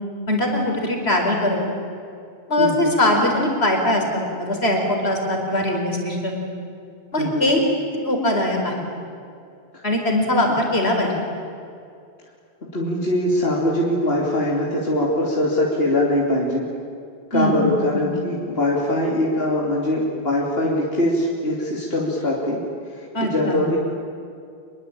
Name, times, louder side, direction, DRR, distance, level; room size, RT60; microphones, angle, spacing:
voice 1, 0.3-1.6 2.5-6.4 7.1-7.6 7.9-8.8 9.8-11.1 17.3-17.6 17.9-18.1 23.1-23.6, left 1 dB, 90° left, 1 dB, 4.7 m, -21 dB
voice 2, 2.6-2.9 7.2-7.5 12.7-16.7 17.3-22.6 22.9-23.8, left 1 dB, 70° left, -3 dB, 3.3 m, -22 dB
27.0 x 22.0 x 8.9 m, 2.5 s
omnidirectional pair, 1.0 m